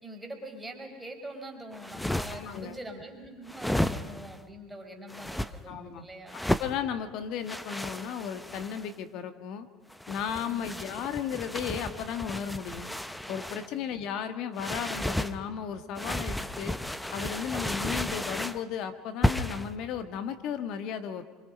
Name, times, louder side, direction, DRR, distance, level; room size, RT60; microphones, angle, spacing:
voice 1, 0.0-6.4 10.5-10.7 13.7-13.8, right 1 dB, 10° right, 3 dB, 4.7 m, -44 dB
sound 1, 1.7-2.6 3.5-4.4 5.1-5.5 6.3-6.7 7.5-8.9 9.9-13.7 14.6-15.3 15.9-18.6 19.2-19.7, left 1 dB, 5° left, 0.9 m, -33 dB
voice 2, 2.3-2.8 5.7-6.1 6.6-9.7 10.1-12.9 13.3-16.8 17.1-21.2, left 8 dB, 65° left, 10 dB, 1.7 m, -35 dB
26.0 x 23.5 x 5.3 m, 1.4 s
supercardioid pair, 95°, 0 cm